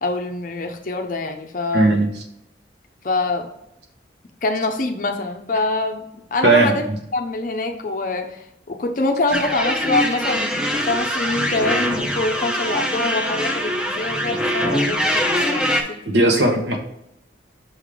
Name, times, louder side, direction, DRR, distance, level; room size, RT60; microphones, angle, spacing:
voice 1, 0.0-2.0 3.0-3.5 4.4-6.9 7.1-16.0, left 2 dB, 45° left, 5 dB, 0.6 m, -25 dB
voice 2, 1.7-2.1 6.4-6.7 16.1-16.8, right 2 dB, 65° right, 3 dB, 1.2 m, -16 dB
sound 1, 9.3-15.8, equal, 5° right, 0.7 m, -23 dB
6.3 x 3.7 x 5.0 m, 0.80 s
head